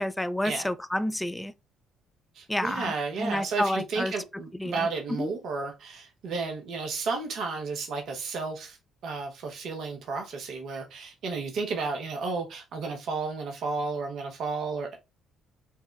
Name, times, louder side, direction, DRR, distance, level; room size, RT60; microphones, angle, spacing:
voice 1, 0.0-1.5 2.5-2.9 3.2-4.1 4.6-4.7 5.2-5.3, left 1 dB, 10° left, 0.4 m, -29 dB
voice 2, 2.4-8.8 9.0-15.0, right 4 dB, 65° right, 0.9 m, -32 dB
4.7 x 2.2 x 3.1 m
hypercardioid pair, 55°, 0 cm